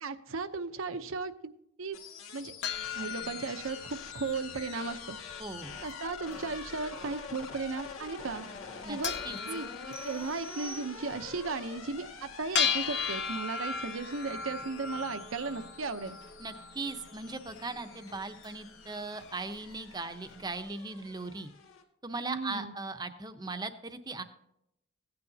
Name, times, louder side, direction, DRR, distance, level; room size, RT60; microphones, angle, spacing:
voice 1, 0.0-1.5 1.8-2.0 2.3-2.5 2.9-5.2 5.8-8.5 8.9-9.1 9.5-16.2 22.2-22.7, right 4 dB, 80° right, 9 dB, 0.8 m, -36 dB
sound 1, 1.9-21.8, left 5 dB, 90° left, 2.0 m, -47 dB
sound 2, 2.6-20.6, left 6 dB, 55° left, 1.0 m, -39 dB
voice 2, 5.4-5.8 8.8-9.0 9.2-9.4 16.4-21.5 22.0-24.2, right 3 dB, 20° right, 8 dB, 0.7 m, -38 dB
sound 3, 9.9-11.5, right 2 dB, 10° left, 1.1 m, -47 dB
16.0 x 9.7 x 2.8 m, 0.78 s
head